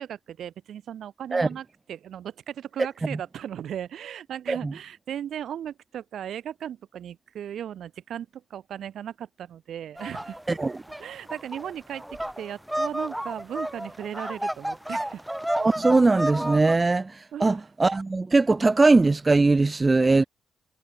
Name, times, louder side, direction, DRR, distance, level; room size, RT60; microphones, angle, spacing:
voice 1, 0.0-10.4 11.0-15.2 17.3-17.6 20.2-20.3, right 10 dB, 65° right, 3.2 m, -37 dB
sound 1, 10.0-16.7, right 1 dB, 5° right, 1.1 m, -31 dB
voice 2, 15.6-20.2, right 3 dB, 25° right, 0.3 m, -20 dB
cardioid pair, 90°, 0 cm